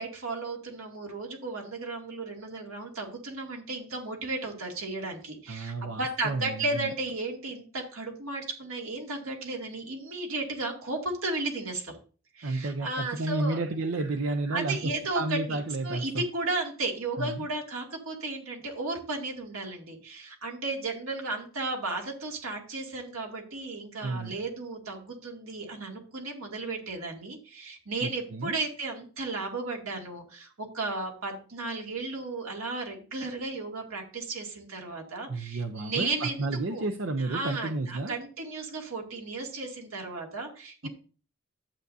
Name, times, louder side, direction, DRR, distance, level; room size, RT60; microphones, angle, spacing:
voice 1, 0.0-12.0 12.3-13.6 14.5-15.6 15.8-36.8 37.2-40.8, right 3 dB, 85° right, 1 dB, 2.3 m, -34 dB
voice 2, 5.5-6.9 12.4-14.8 15.1-16.2 17.2-17.5 24.0-24.3 28.0-28.6 35.3-38.1 40.8-40.9, right 2 dB, 65° right, 6 dB, 0.6 m, -31 dB
11.5 x 8.0 x 2.7 m, 0.38 s
head